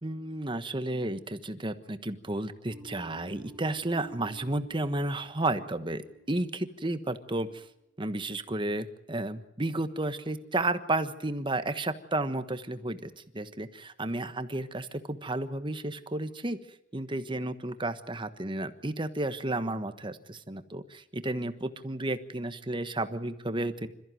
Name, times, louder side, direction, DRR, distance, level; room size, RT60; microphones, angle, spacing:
voice 1, 0.0-6.0 6.3-7.6 8.0-16.6 16.9-23.9, right 2 dB, 25° right, 10 dB, 1.3 m, -32 dB
sound 1, 2.7-7.7, right 3 dB, 10° left, 3.6 m, -52 dB
27.5 x 14.5 x 9.3 m, 0.85 s
head